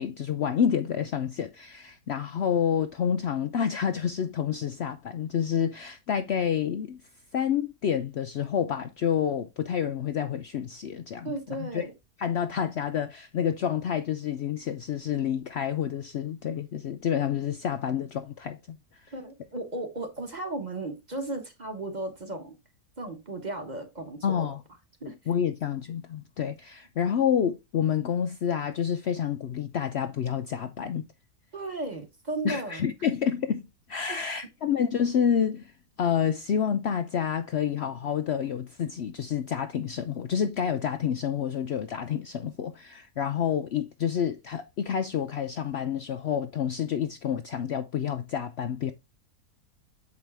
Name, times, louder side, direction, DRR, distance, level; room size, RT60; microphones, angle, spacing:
voice 1, 0.0-7.0 7.3-11.8 12.2-18.8 19.0-19.1 24.2-24.6 25.0-31.0 32.4-33.6 33.9-35.7 36.0-48.9, left 8 dB, 85° left, 0.5 m, -28 dB
voice 2, 11.2-11.9 19.1-22.6 23.0-24.5 25.0-25.2 31.5-32.9 34.1-34.2, right 2 dB, 30° right, 1.3 m, -35 dB
7.5 x 4.8 x 3.4 m
omnidirectional pair, 1.8 m